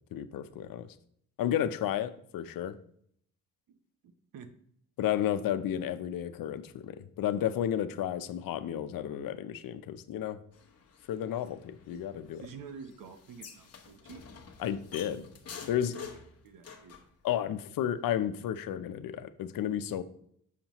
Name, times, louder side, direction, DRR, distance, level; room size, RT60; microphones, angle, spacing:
voice 1, 0.1-0.9 1.4-2.8 5.0-10.4 11.1-12.4 14.6-15.3 15.7-15.9 17.2-20.0, left 10 dB, 85° left, 12 dB, 0.6 m, -32 dB
sound 1, 10.5-17.1, left 6 dB, 45° left, 1.0 m, -49 dB
voice 2, 12.4-14.3 15.9-16.2 16.4-17.0, right 6 dB, 75° right, 8 dB, 0.8 m, -48 dB
7.2 x 6.6 x 2.9 m, 0.68 s
cardioid pair, 140°, 33 cm